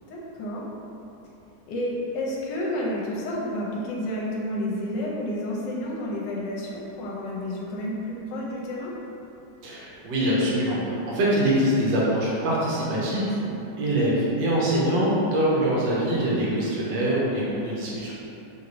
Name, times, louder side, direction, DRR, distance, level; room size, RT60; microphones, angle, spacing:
voice 1, 0.1-0.7 1.7-8.9, left 1 dB, 80° left, -4 dB, 1.2 m, -30 dB
voice 2, 9.6-18.1, right 1 dB, 80° right, -6 dB, 1.4 m, -24 dB
3.3 x 2.9 x 2.5 m, 2.8 s
omnidirectional pair, 2.0 m